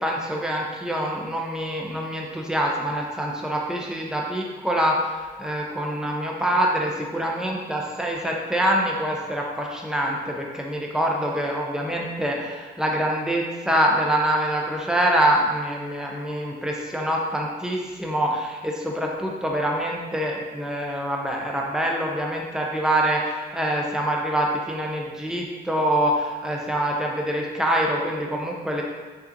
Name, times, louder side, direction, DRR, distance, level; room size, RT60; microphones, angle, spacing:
voice 1, 0.0-28.8, right 1 dB, 5° right, -2 dB, 0.7 m, -25 dB
3.3 x 2.5 x 3.0 m, 1.4 s
supercardioid pair, 50°, 20 cm